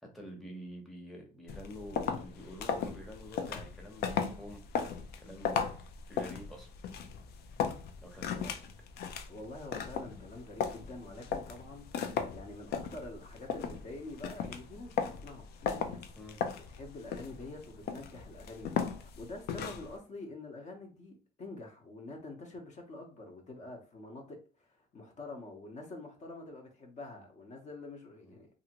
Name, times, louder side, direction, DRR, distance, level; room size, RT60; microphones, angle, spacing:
voice 1, 0.0-4.6 5.2-5.6 6.1-6.7 8.0-8.6 16.2-16.4 19.5-19.7 28.2-28.3, equal, ahead, 0.8 m, -47 dB
sound 1, 1.5-20.0, left 6 dB, 70° left, 0.5 m, -37 dB
voice 2, 9.3-16.0 16.6-28.5, left 2 dB, 45° left, 0.8 m, -46 dB
2.7 x 2.6 x 2.9 m
cardioid pair, 110°, 17 cm